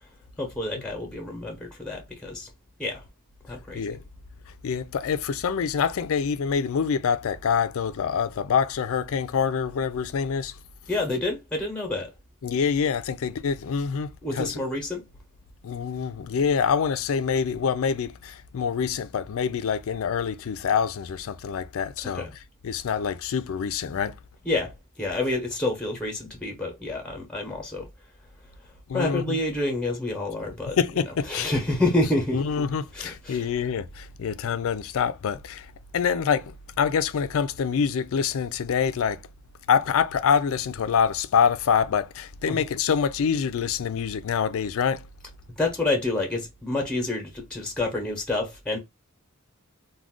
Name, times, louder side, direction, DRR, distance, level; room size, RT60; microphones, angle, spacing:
voice 1, 0.4-2.5 2.8-3.0 3.5-4.0 10.9-12.1 14.2-15.0 22.1-22.3 24.4-27.9 28.9-30.8 31.3-32.4 32.9-33.5 42.5-42.6 45.6-48.8, left 2 dB, 5° left, 0.7 m, -28 dB
voice 2, 4.6-10.5 12.4-14.6 15.6-22.3 22.6-24.1 28.9-29.4 30.8-31.5 32.3-35.7 35.9-39.2 39.7-45.0, left 6 dB, 65° left, 0.4 m, -26 dB
2.4 x 2.2 x 3.5 m
head